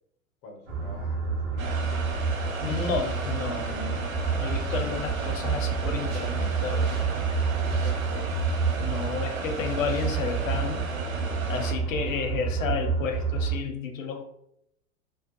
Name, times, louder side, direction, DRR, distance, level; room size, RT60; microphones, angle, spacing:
voice 1, 0.4-1.9 7.3-7.7, left 2 dB, 20° left, 2 dB, 0.3 m, -48 dB
sound 1, 0.7-13.5, right 5 dB, 65° right, 0.9 m, -29 dB
sound 2, 1.6-11.7, right 3 dB, 85° right, 0.6 m, -35 dB
sound 3, 2.1-10.9, right 3 dB, 25° right, 0.6 m, -51 dB
voice 2, 2.6-4.1 4.3-6.9 7.8-8.4 8.8-10.8 11.5-14.2, left 6 dB, 70° left, 5 dB, 0.6 m, -32 dB
2.4 x 2.2 x 2.5 m, 0.74 s
figure-of-eight pair, 85°, 41 cm